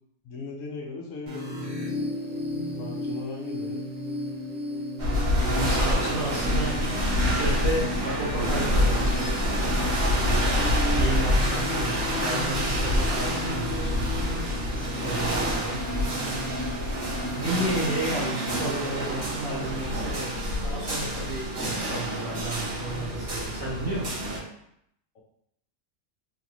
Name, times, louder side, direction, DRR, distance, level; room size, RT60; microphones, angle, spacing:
voice 1, 0.2-2.1 2.8-3.8 25.1-25.2, left 3 dB, 75° left, -1 dB, 1.0 m, -39 dB
sound 1, 1.3-18.9, left 1 dB, 70° right, 1.1 m, -35 dB
sound 2, 5.0-24.4, equal, 50° right, 1.2 m, -27 dB
voice 2, 5.4-9.3 10.9-14.1 15.0-15.8 17.3-20.4 20.6-24.2, right 1 dB, 20° right, -10 dB, 0.9 m, -32 dB
3.1 x 2.5 x 2.9 m, 0.75 s
omnidirectional pair, 1.4 m